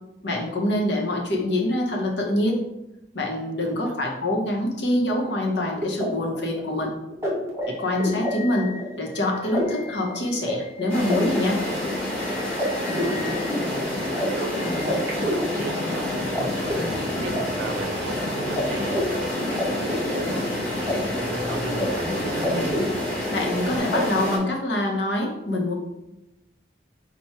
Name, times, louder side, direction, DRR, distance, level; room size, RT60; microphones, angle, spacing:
voice 1, 0.2-2.6 3.1-6.9 7.7-8.7 9.0-11.6 23.3-25.7, left 1 dB, 75° left, 0 dB, 0.9 m, -25 dB
voice 2, 3.6-4.0 12.6-13.4 14.1-20.4 20.9-22.7, right 3 dB, 85° right, 6 dB, 0.4 m, -37 dB
sound 1, 5.3-16.4 16.7-18.2 18.6-18.7 18.9-20.9 21.2-21.9 22.1-23.5 23.9-24.0, left 1 dB, 15° right, 0.8 m, -30 dB
sound 2, 10.9-24.4, left 1 dB, 10° left, 1.5 m, -28 dB
sound 3, 15.8-23.8, equal, 35° left, 0.6 m, -40 dB
4.2 x 2.3 x 4.6 m, 0.91 s
head